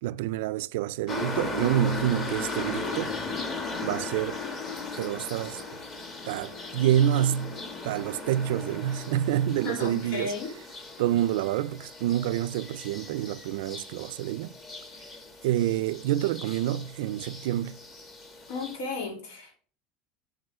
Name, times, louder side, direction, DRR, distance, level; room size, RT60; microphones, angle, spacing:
voice 1, 0.0-3.2 3.8-4.4 5.0-5.6 6.3-7.6 7.8-10.3 11.0-14.5 15.4-17.8, right 12 dB, 80° right, 0.4 m, -27 dB
sound 1, 1.1-18.8, left 3 dB, 20° left, 1.1 m, -37 dB
voice 2, 9.6-10.6 18.5-19.6, left 4 dB, 90° left, 2.9 m, -34 dB
7.9 x 6.0 x 3.6 m
cardioid pair, 180°, 0 cm